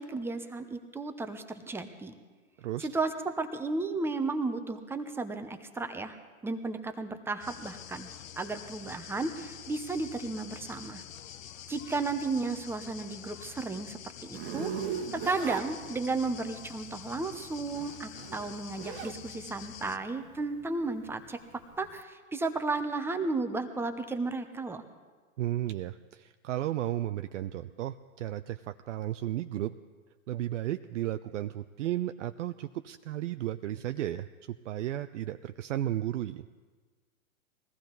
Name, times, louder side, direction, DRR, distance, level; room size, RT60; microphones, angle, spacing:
voice 1, 0.0-2.1 2.8-6.2 6.4-8.1 8.4-11.0 11.7-14.0 14.3-14.7 15.1-21.4 21.8-24.8, right 3 dB, 5° right, 8 dB, 0.8 m, -33 dB
sound 1, 7.4-20.0, left 10 dB, 70° left, 1.0 m, -47 dB
Zipper (clothing), 14.3-16.4 17.5-19.2 19.6-22.0, right 7 dB, 45° right, 1.2 m, -38 dB
voice 2, 25.4-29.7 30.3-36.4, right 13 dB, 60° right, 10 dB, 0.6 m, -34 dB
21.5 x 15.0 x 4.0 m, 1.4 s
hypercardioid pair, 120°, 41 cm